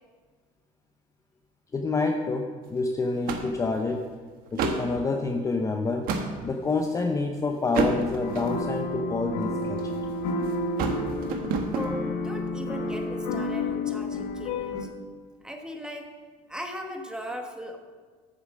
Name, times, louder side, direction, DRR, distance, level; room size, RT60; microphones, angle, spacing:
voice 1, 1.7-4.0 4.5-6.1 6.4-9.8, left 3 dB, 20° left, 3 dB, 0.7 m, -27 dB
sound 1, 2.6-2.8 3.3-4.0 4.5-4.9 5.6-6.3 6.9-7.2 7.7-8.7 9.4-10.1 10.4-11.9, right 4 dB, 65° right, 1.2 m, -30 dB
sound 2, 8.2-14.9, left 2 dB, 75° left, 1.3 m, -30 dB
voice 2, 11.7-14.9 15.4-16.1 16.5-17.8, equal, 5° right, 4 dB, 1.1 m, -38 dB
9.2 x 6.9 x 6.4 m, 1.5 s
cardioid pair, 130°, 17 cm